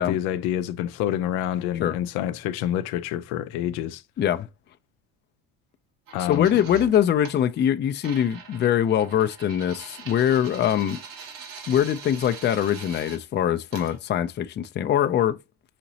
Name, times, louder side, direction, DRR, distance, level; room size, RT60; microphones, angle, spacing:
voice 1, 0.0-4.0 6.1-6.5, left 11 dB, 90° left, 0.5 m, -27 dB
voice 2, 4.2-4.5 6.2-11.0 11.7-15.4, left 10 dB, 30° left, 0.4 m, -23 dB
sound 1, 6.1-7.4 8.0-13.2 13.7-14.0, right 5 dB, 65° right, 1.2 m, -42 dB
5.1 x 2.9 x 2.7 m
cardioid pair, 110°, 35 cm